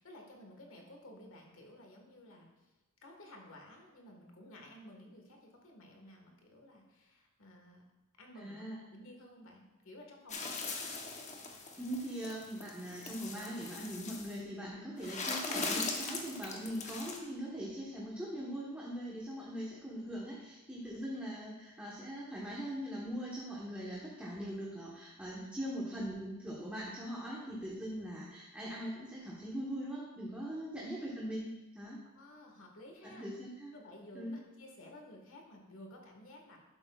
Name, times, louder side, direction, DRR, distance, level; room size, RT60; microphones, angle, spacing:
voice 1, 0.0-2.7 3.0-7.8 8.2-8.6 8.9-10.8 32.0-33.2 33.7-36.6, left 1 dB, 65° left, 1 dB, 1.6 m, -54 dB
voice 2, 8.4-8.8 11.8-32.0 33.0-33.7 34.1-34.3, equal, 5° right, -6 dB, 1.1 m, -41 dB
sound 1, 10.3-14.4 15.0-17.2, left 3 dB, 35° left, 0.9 m, -40 dB
11.5 x 7.7 x 2.4 m, 1.1 s
head